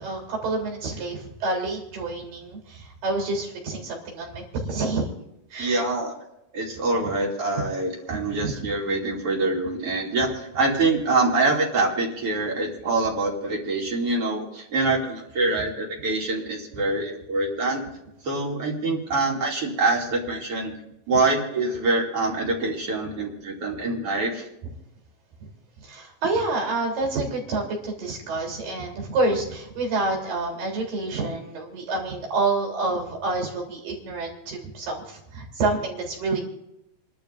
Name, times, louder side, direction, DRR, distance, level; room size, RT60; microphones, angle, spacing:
voice 1, 0.0-5.1 5.5-5.8 6.9-7.1 8.1-8.7 16.7-16.8 24.6-24.7 25.4-25.5 25.8-36.4, right 3 dB, 85° right, 1 dB, 5.0 m, -28 dB
voice 2, 5.6-6.1 6.5-17.8 18.2-20.7 21.1-24.4, right 3 dB, 45° right, -2 dB, 3.3 m, -25 dB
29.5 x 12.0 x 2.5 m, 0.84 s
omnidirectional pair, 3.8 m